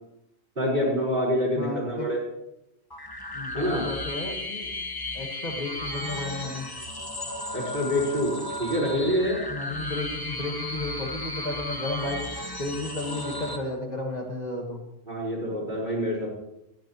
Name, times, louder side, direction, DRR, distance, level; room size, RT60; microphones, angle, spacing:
voice 1, 0.5-2.2 3.5-3.8 7.5-9.4 15.1-16.3, equal, 50° right, -6 dB, 4.8 m, -26 dB
voice 2, 1.5-2.1 3.3-4.7 5.1-6.7 9.5-12.3 12.6-14.8, left 2 dB, 40° left, 1 dB, 1.7 m, -33 dB
sound 1, 2.9-13.6, left 1 dB, 20° left, 1.1 m, -35 dB
20.5 x 8.5 x 3.0 m, 0.86 s
omnidirectional pair, 1.1 m